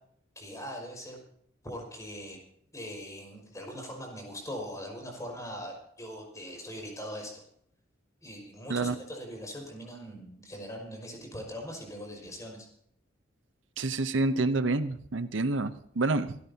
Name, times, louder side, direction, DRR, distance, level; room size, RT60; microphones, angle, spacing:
voice 1, 0.4-1.2 1.6-2.4 2.7-7.4 8.2-12.7, equal, 15° left, 1 dB, 5.4 m, -41 dB
voice 2, 13.8-16.4, right 2 dB, 65° right, 11 dB, 0.8 m, -28 dB
26.5 x 13.0 x 2.8 m, 0.67 s
head